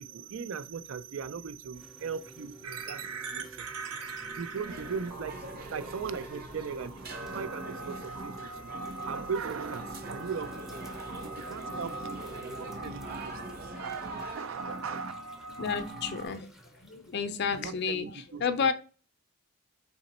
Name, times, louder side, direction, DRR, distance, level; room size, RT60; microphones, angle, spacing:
voice 1, 0.0-15.1 17.5-18.4, right 6 dB, 65° right, 0.4 m, -39 dB
sound 1, 1.7-17.9, right 1 dB, ahead, 0.5 m, -51 dB
sound 2, 2.6-16.3, right 3 dB, 85° right, 0.8 m, -41 dB
sound 3, 4.7-14.4, right 2 dB, 45° right, 0.8 m, -45 dB
voice 2, 15.6-16.5 16.8-18.7, left 6 dB, 50° left, 0.5 m, -31 dB
4.1 x 2.9 x 4.1 m
head